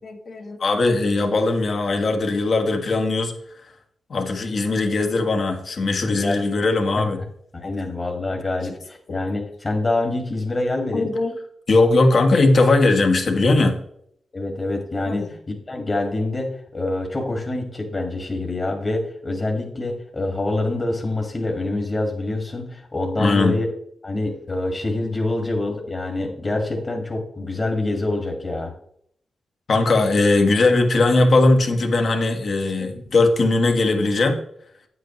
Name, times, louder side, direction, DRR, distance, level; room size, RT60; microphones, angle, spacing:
voice 1, 0.0-3.3 4.1-7.2 7.6-7.7 10.9-11.3 11.7-13.8 15.1-15.3 23.2-23.6 29.7-34.4, left 2 dB, 60° left, 4 dB, 1.4 m, -19 dB
voice 2, 6.0-6.4 7.0-7.1 7.5-11.1 14.3-23.7 24.0-28.7, left 2 dB, 35° left, 1 dB, 1.7 m, -26 dB
9.2 x 8.1 x 3.0 m, 0.69 s
cardioid pair, 75°, 0 cm